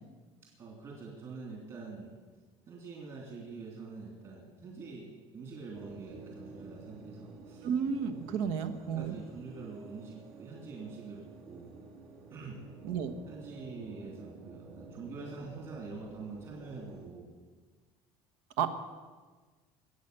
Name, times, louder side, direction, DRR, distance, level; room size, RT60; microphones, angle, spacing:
voice 1, 0.6-2.1 2.7-7.7 8.3-8.6 8.9-11.8 12.3-12.6 13.3-17.3, right 4 dB, 35° right, -2 dB, 3.1 m, -45 dB
sound 1, 5.7-17.1, right 3 dB, 65° right, 2.5 m, -51 dB
voice 2, 7.6-9.1 12.8-13.1 18.6-18.7, right 7 dB, 80° right, 8 dB, 1.4 m, -32 dB
23.0 x 8.4 x 6.9 m, 1.4 s
cardioid pair, 175°, 12 cm